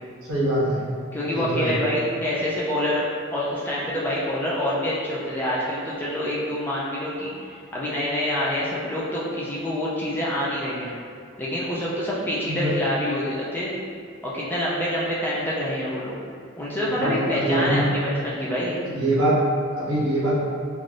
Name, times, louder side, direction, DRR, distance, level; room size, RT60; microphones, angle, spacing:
voice 1, 0.3-0.8 1.3-1.7 12.5-12.7 16.9-17.9 18.9-19.4 19.8-20.3, right 1 dB, 85° right, -8 dB, 1.0 m, -23 dB
voice 2, 1.1-3.0 3.3-10.9 11.4-13.7 14.2-16.2 16.6-18.8, left 1 dB, 10° left, -7 dB, 0.4 m, -26 dB
3.3 x 2.5 x 2.5 m, 2.3 s
head